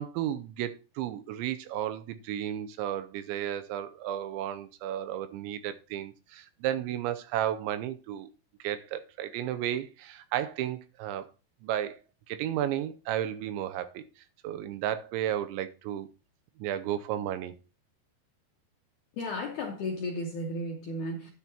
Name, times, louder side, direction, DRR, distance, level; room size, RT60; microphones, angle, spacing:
voice 1, 0.0-8.3 8.6-11.3 11.6-12.0 12.3-14.0 14.4-16.1 16.6-17.6, right 11 dB, 85° right, 3.1 m, -33 dB
voice 2, 19.2-21.3, left 1 dB, 75° left, 1.8 m, -34 dB
12.0 x 10.5 x 2.9 m
omnidirectional pair, 5.2 m